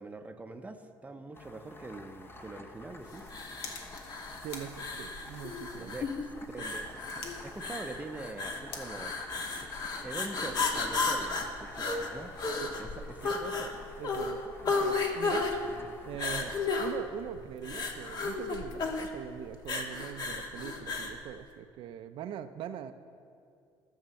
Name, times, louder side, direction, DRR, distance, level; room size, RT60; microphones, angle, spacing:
voice 1, 0.0-3.3 5.8-9.1 10.0-12.3 12.8-13.8 15.6-16.0, right 2 dB, 15° right, 6 dB, 0.8 m, -44 dB
sound 1, 1.3-17.0, left 2 dB, 25° left, 0.9 m, -51 dB
sound 2, 2.8-10.1, left 4 dB, 85° left, 1.7 m, -50 dB
sound 3, 3.3-21.2, left 4 dB, 45° left, 1.5 m, -34 dB
voice 2, 4.4-6.0 6.6-6.7 12.6-12.7 14.0-15.5 16.0-22.9, right 9 dB, 70° right, 8 dB, 0.6 m, -42 dB
14.0 x 6.6 x 7.1 m, 2.4 s
cardioid pair, 115°, 9 cm